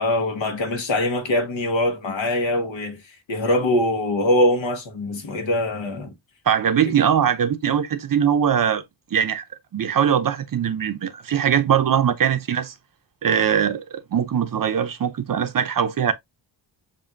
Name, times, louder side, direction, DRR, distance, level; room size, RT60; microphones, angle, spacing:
voice 1, 0.0-3.0 3.3-6.1, left 1 dB, 75° left, 1.4 m, -22 dB
voice 2, 6.5-8.8 9.1-9.4 9.7-12.7 13.2-16.1, right 8 dB, 45° right, 0.6 m, -21 dB
7.2 x 2.6 x 2.5 m
wide cardioid pair, 170°, 46 cm